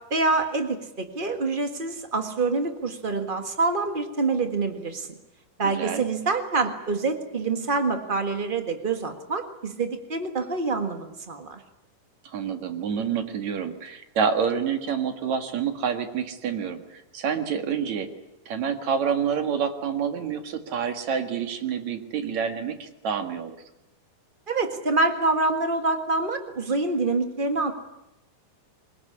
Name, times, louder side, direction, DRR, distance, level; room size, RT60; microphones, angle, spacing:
voice 1, 0.1-5.1 5.6-11.6 24.5-27.7, right 3 dB, 75° right, 6 dB, 0.4 m, -26 dB
voice 2, 5.6-6.1 12.2-18.1 18.5-23.6, right 7 dB, 60° right, 7 dB, 2.9 m, -28 dB
23.0 x 21.0 x 9.8 m, 0.89 s
omnidirectional pair, 4.0 m